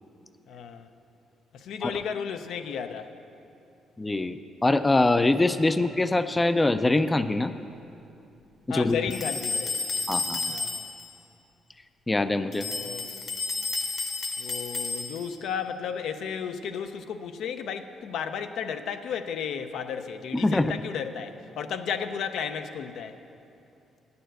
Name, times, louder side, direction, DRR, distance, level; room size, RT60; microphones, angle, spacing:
voice 1, 0.5-0.9 1.5-3.1 8.7-9.8 10.5-10.9 12.7-13.1 14.4-23.2, left 7 dB, 75° left, 8 dB, 0.5 m, -33 dB
voice 2, 4.0-7.5 8.7-9.0 10.1-10.5 12.1-12.7 20.3-20.7, left 2 dB, 15° left, 11 dB, 0.3 m, -24 dB
sound 1, 9.1-11.1 12.5-15.4, left 3 dB, 55° left, 1.1 m, -31 dB
9.1 x 6.9 x 7.7 m, 2.7 s
cardioid pair, 90°, 0 cm